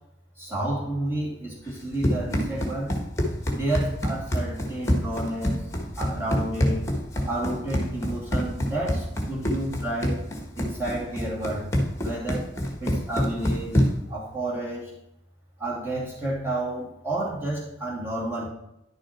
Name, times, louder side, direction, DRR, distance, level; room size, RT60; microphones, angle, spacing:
voice 1, 0.4-2.9 3.5-5.6 6.0-6.9 7.2-10.2 10.6-11.7 12.0-12.5 12.8-14.9 15.6-18.5, right 1 dB, 10° right, -6 dB, 2.6 m, -31 dB
Run, 1.7-14.1, equal, 15° left, 1.4 m, -27 dB
10.5 x 6.3 x 4.4 m, 0.88 s
head